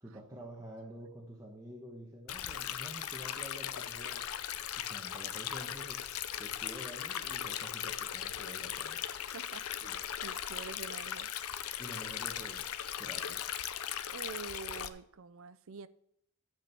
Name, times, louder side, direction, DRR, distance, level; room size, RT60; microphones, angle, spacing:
voice 1, 0.0-4.2 4.8-6.0 6.4-9.0 9.8-9.9 11.8-12.6 13.0-13.4, right 1 dB, 15° right, 1.1 m, -48 dB
Stream, 2.3-14.9, left 10 dB, 85° left, 0.6 m, -38 dB
voice 2, 9.3-10.0 10.2-11.3 14.1-15.9, right 5 dB, 65° right, 0.5 m, -46 dB
11.5 x 4.5 x 6.9 m
head